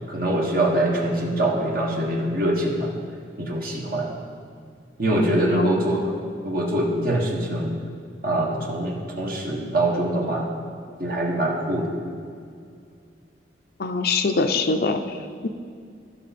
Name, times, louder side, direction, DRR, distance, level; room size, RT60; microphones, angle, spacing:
voice 1, 0.1-2.9 3.4-4.1 5.0-6.1 6.4-7.7 8.2-10.5 11.0-11.9, right 1 dB, 55° right, -2 dB, 1.4 m, -24 dB
voice 2, 5.5-5.9 13.8-15.0 15.4-15.5, left 3 dB, 55° left, 6 dB, 0.5 m, -23 dB
15.0 x 5.7 x 4.3 m, 2.3 s
head